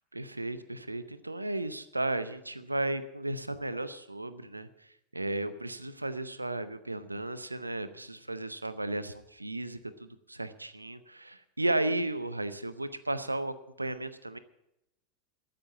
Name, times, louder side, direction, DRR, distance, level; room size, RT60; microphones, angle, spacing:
voice 1, 0.1-4.7 5.1-14.4, right 2 dB, 90° right, 14 dB, 0.7 m, -34 dB
13.5 x 7.8 x 8.6 m, 0.85 s
figure-of-eight pair, 85°, 0 cm